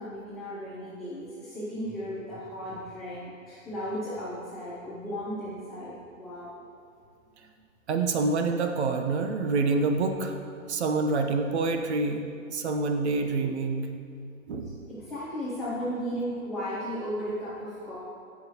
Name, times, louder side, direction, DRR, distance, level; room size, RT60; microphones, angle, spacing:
voice 1, 0.0-6.6 14.6-18.0, equal, ahead, -15 dB, 0.5 m, -35 dB
voice 2, 7.9-10.4 10.7-12.2 12.5-13.9 14.5-14.7, right 3 dB, 55° right, 5 dB, 1.1 m, -27 dB
16.0 x 6.3 x 3.0 m, 2.4 s
hypercardioid pair, 155°, 40 cm